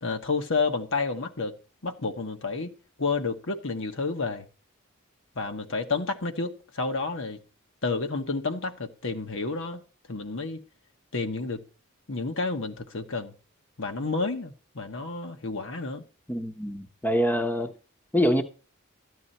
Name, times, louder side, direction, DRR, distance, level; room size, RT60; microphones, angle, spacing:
voice 1, 0.0-1.6 1.8-2.7 3.0-4.5 5.3-7.4 7.8-9.8 10.1-10.6 11.1-11.6 12.1-13.4 13.8-16.0, left 3 dB, 60° left, 1.3 m, -30 dB
voice 2, 16.3-17.7 18.1-18.4, equal, 10° left, 0.9 m, -25 dB
13.5 x 9.5 x 4.2 m
head